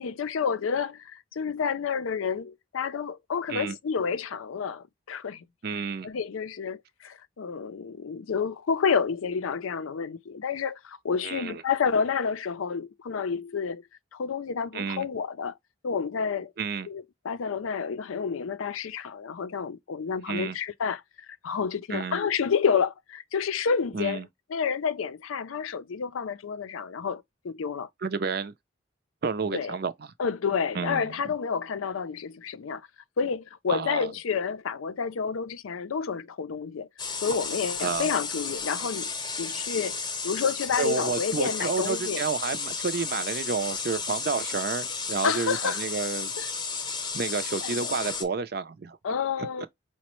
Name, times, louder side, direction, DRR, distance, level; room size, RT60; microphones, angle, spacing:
voice 1, 0.0-5.4 6.0-13.8 14.1-15.5 15.8-16.5 16.9-21.0 21.4-24.2 24.5-27.9 29.5-29.7 30.2-32.8 33.2-36.9 37.2-40.0 40.2-42.2 45.2-45.8 46.4-46.5 47.6-48.0 49.0-49.7, left 6 dB, 90° left, 0.5 m, -29 dB
voice 2, 5.6-6.1 11.2-11.6 14.7-15.1 16.6-16.9 20.3-20.6 21.9-22.2 23.9-24.3 28.0-28.5 29.2-30.1 30.7-31.3 33.7-34.1 37.8-38.1 40.8-46.3 47.1-49.0 49.4-49.7, right 5 dB, 50° right, 0.4 m, -30 dB
sound 1, 37.0-48.2, left 5 dB, 20° left, 0.8 m, -33 dB
5.0 x 2.1 x 2.9 m
head